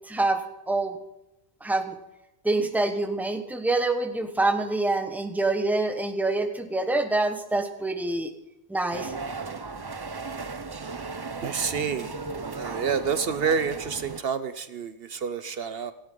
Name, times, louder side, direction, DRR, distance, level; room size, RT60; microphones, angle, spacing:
voice 1, 0.1-1.0 1.6-2.0 2.4-8.3 8.7-9.1, right 2 dB, ahead, 7 dB, 1.2 m, -26 dB
sound 1, 8.9-14.2, right 4 dB, 25° right, 0.6 m, -36 dB
voice 2, 11.4-12.1 12.6-15.9, right 6 dB, 65° right, 12 dB, 1.0 m, -28 dB
17.5 x 14.5 x 3.9 m, 0.94 s
omnidirectional pair, 1.1 m